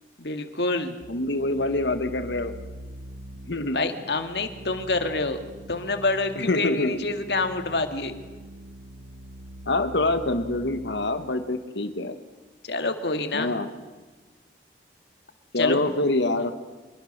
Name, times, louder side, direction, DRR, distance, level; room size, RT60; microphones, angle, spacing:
voice 1, 0.2-1.0 3.7-5.4 5.7-8.2 12.6-13.5 15.6-15.8, left 3 dB, 75° left, 7 dB, 2.0 m, -27 dB
sound 1, 1.0-11.2, right 1 dB, 80° right, 1.1 m, -43 dB
voice 2, 1.1-2.5 3.5-3.8 6.3-7.0 9.7-12.1 13.3-13.7 15.5-16.5, left 2 dB, 90° left, 9 dB, 1.4 m, -25 dB
24.5 x 22.0 x 6.6 m, 1.3 s
head